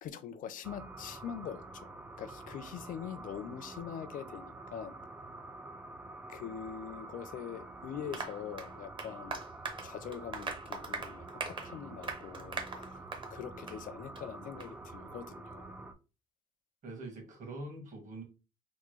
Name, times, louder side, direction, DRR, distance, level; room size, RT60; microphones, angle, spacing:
voice 1, 0.0-1.9 2.2-5.0 6.3-9.4 9.8-13.0 13.3-15.8, left 8 dB, 55° left, 13 dB, 0.4 m, -43 dB
sound 1, 0.6-15.9, right 2 dB, 10° right, 0.3 m, -48 dB
Applause, 8.1-13.4 13.7-13.8 14.2-14.3 14.6-14.7, right 4 dB, 30° right, 0.7 m, -41 dB
voice 2, 16.8-18.2, right 2 dB, 50° right, 2 dB, 1.6 m, -44 dB
3.5 x 2.1 x 3.1 m, 0.31 s
cardioid pair, 110°, 17 cm